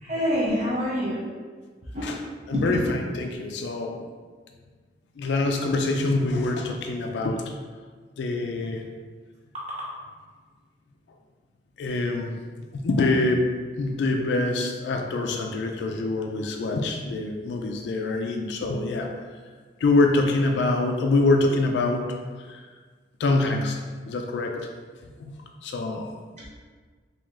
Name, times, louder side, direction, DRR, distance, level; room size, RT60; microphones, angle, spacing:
voice 1, 0.0-1.2 1.9-2.1 2.5-2.6 26.4-26.5, equal, 40° right, -7 dB, 0.8 m, -26 dB
voice 2, 2.0-4.0 5.2-7.5 8.2-8.8 11.8-12.3 12.7-13.5 13.8-19.1 19.8-22.1 22.5-22.6 23.2-23.8 24.1-24.7 25.2-25.3 25.6-26.1, left 2 dB, 80° left, 3 dB, 0.3 m, -25 dB
3.2 x 2.8 x 3.5 m, 1.5 s
head